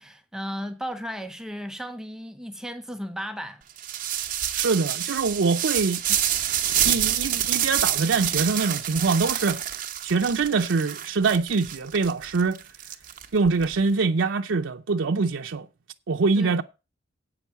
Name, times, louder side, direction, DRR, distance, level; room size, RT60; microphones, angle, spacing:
voice 1, 0.0-3.6 16.4-16.6, equal, 5° right, 0.6 m, -35 dB
sound 1, 3.8-13.6, right 11 dB, 45° right, 1.0 m, -27 dB
voice 2, 4.5-6.0 6.8-9.6 10.0-12.6 13.3-15.7 16.1-16.6, right 4 dB, 80° right, 0.6 m, -24 dB
8.4 x 5.9 x 8.1 m
head